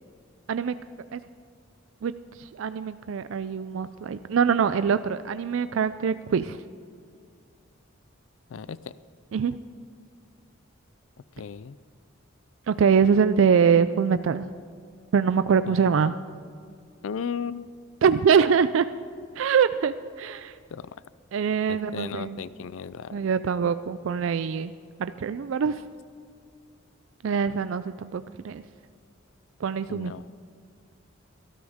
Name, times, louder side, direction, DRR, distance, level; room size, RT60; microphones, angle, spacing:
voice 1, 2.4-6.6 9.3-9.6 12.7-14.5 15.1-16.1 18.0-18.9 19.4-20.5 21.3-22.4 23.1-24.7 25.0-25.8 27.2-28.6 29.6-30.1, right 6 dB, 70° right, 12 dB, 0.4 m, -23 dB
voice 2, 8.5-8.9 11.4-11.8 15.7-16.2 17.0-17.7 20.7-21.0 21.7-23.3 29.9-30.3, left 6 dB, 75° left, 17 dB, 0.4 m, -36 dB
18.0 x 13.0 x 3.6 m, 2.3 s
head